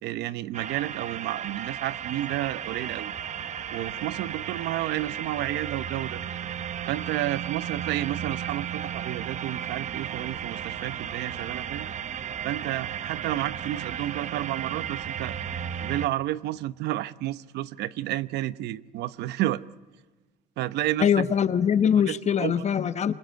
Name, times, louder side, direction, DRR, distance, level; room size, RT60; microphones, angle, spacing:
voice 1, 0.0-3.1 3.7-6.2 6.9-11.9 12.4-15.4 15.8-19.6 20.6-21.3 22.0-22.6, right 14 dB, 80° right, 0.9 m, -31 dB
sound 1, 0.5-16.1, right 9 dB, 45° right, 1.0 m, -34 dB
voice 2, 21.0-23.1, left 8 dB, 40° left, 1.1 m, -22 dB
26.5 x 24.0 x 9.3 m
cardioid pair, 110°, 17 cm